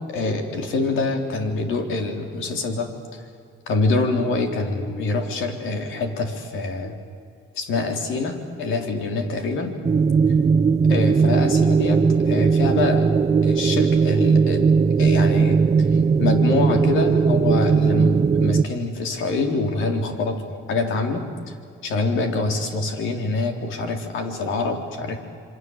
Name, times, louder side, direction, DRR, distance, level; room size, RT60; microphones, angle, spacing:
voice 1, 0.1-3.2 3.7-7.0 7.5-9.7 10.9-13.1 13.4-14.7 15.0-15.6 16.2-21.3 21.8-25.2, left 3 dB, 85° left, 4 dB, 3.6 m, -25 dB
sound 1, 9.8-18.6, right 5 dB, 35° right, 0.9 m, -18 dB
27.5 x 24.0 x 8.0 m, 2.3 s
cardioid pair, 90°, 20 cm